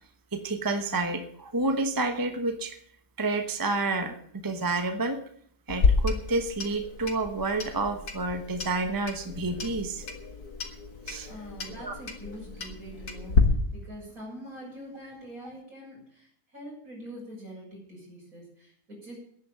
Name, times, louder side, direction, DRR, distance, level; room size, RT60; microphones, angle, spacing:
voice 1, 0.3-2.8 3.2-5.2 5.7-10.0 11.1-11.3 11.8-12.0, right 2 dB, 15° right, 7 dB, 1.0 m, -29 dB
Clock, 5.7-13.4, left 4 dB, 85° left, 2.3 m, -30 dB
voice 2, 11.3-19.2, equal, 65° right, -2 dB, 7.6 m, -44 dB
11.0 x 9.8 x 8.8 m, 0.65 s
omnidirectional pair, 1.6 m